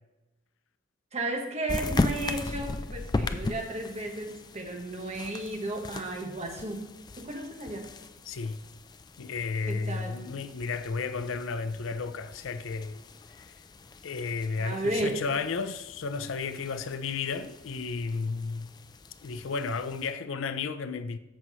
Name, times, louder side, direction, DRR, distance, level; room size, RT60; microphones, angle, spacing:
voice 1, 1.1-6.9 7.1-7.9 9.7-10.2 14.6-15.2, right 2 dB, 35° right, 1.1 m, -33 dB
sound 1, 1.7-20.1, left 2 dB, 20° left, 0.3 m, -38 dB
voice 2, 8.3-8.6 9.2-13.0 13.4-13.5 14.0-18.7 19.2-21.2, left 4 dB, 80° left, 0.5 m, -33 dB
13.5 x 5.5 x 3.1 m
head